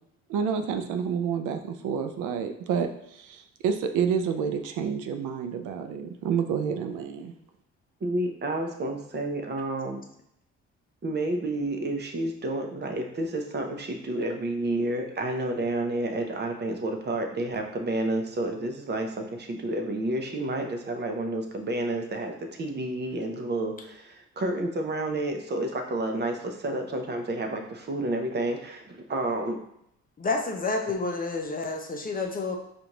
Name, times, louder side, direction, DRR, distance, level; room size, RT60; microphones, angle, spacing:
voice 1, 0.3-7.3, right 7 dB, 85° right, 6 dB, 0.5 m, -29 dB
voice 2, 8.0-10.0 11.0-29.6, right 2 dB, 35° right, 3 dB, 0.7 m, -30 dB
voice 3, 30.2-32.6, left 3 dB, 30° left, 3 dB, 0.6 m, -29 dB
5.0 x 2.5 x 3.0 m, 0.77 s
cardioid pair, 90°, 30 cm